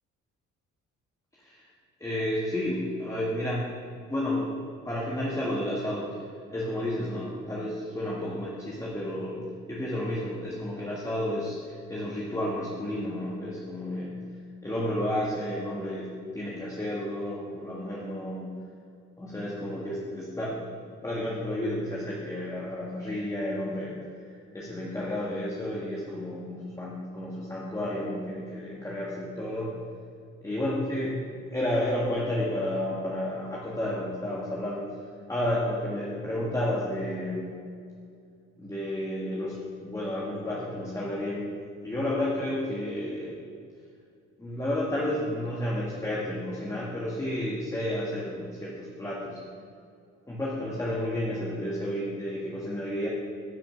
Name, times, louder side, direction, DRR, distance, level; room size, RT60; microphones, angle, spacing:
voice 1, 1.4-1.7 2.0-3.7 4.1-4.5 4.8-6.2 6.5-14.2 14.6-18.6 19.2-20.8 21.0-24.2 24.5-29.7 30.4-34.9 35.3-37.5 38.6-41.5 41.8-43.3 44.4-49.4 50.3-53.1, left 1 dB, 10° left, -5 dB, 1.8 m, -31 dB
11.0 x 5.9 x 6.9 m, 2.3 s
cardioid pair, 90°, 30 cm